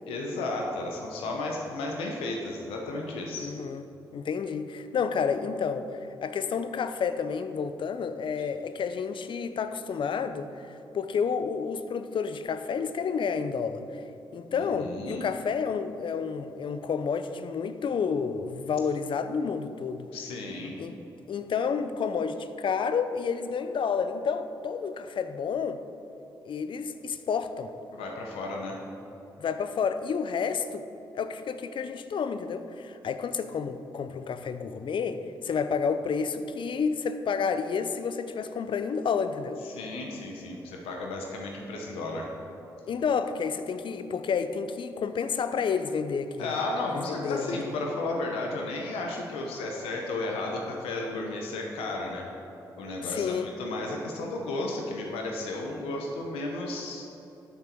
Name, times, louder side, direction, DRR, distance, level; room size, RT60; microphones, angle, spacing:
voice 1, 0.0-3.5 14.6-15.2 20.1-20.7 27.9-28.8 39.6-42.3 46.4-52.3 52.8-57.1, left 2 dB, 85° left, 0 dB, 1.0 m, -33 dB
voice 2, 3.4-3.8 4.1-5.9 6.2-13.8 14.3-20.1 20.8-21.0 21.3-25.8 26.4-27.7 29.4-30.8 31.1-39.6 42.9-46.6 46.9-47.6 53.0-53.5, left 6 dB, 60° left, 10 dB, 0.6 m, -30 dB
12.5 x 6.2 x 4.5 m, 3.0 s
supercardioid pair, 45°, 10 cm